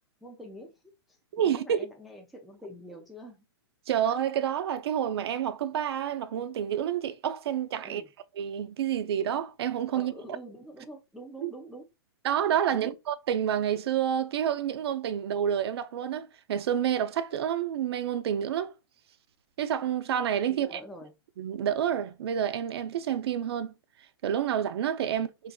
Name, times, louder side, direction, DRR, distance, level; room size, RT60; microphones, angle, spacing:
voice 1, 0.2-0.8 1.1-1.2 1.4-3.4 7.8-8.1 9.9-11.9 12.7-12.9 20.5-21.1 25.1-25.3, equal, ahead, 0.4 m, -45 dB
voice 2, 1.3-1.9 3.9-8.0 8.4-10.1 11.4-11.5 12.2-18.7 19.6-20.8 21.4-23.7 24.2-25.3, right 9 dB, 65° right, 0.5 m, -29 dB
3.9 x 2.5 x 2.2 m
hypercardioid pair, 140°, 14 cm